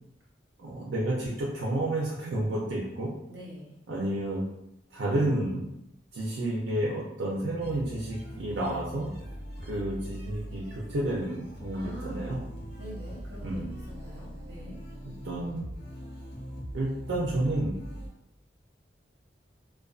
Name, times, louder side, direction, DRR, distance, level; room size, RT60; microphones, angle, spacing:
voice 1, 0.6-3.1 3.9-4.4 4.9-5.7 6.1-9.1 9.7-12.4 13.4-13.7 15.0-15.7 16.7-17.8, right 1 dB, 90° right, -5 dB, 0.5 m, -30 dB
voice 2, 3.3-3.7 11.7-12.4 12.8-14.7, equal, 65° right, -3 dB, 0.9 m, -44 dB
sound 1, 7.6-18.1, equal, 65° left, 0.7 m, -41 dB
2.4 x 2.2 x 2.3 m, 0.83 s
head